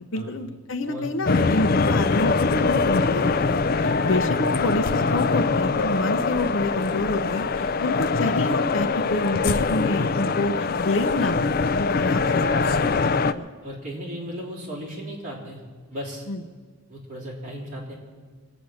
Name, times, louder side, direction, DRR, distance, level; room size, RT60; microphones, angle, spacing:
voice 1, 0.0-12.3 13.1-13.5 16.3-16.4, left 2 dB, 55° left, 8 dB, 0.8 m, -28 dB
sound 1, 1.3-13.3, left 4 dB, 40° left, 0.4 m, -23 dB
voice 2, 12.2-12.8 13.6-15.6 15.9-16.3 16.9-17.9, equal, 35° right, -4 dB, 3.8 m, -36 dB
23.0 x 9.0 x 6.4 m, 1.5 s
head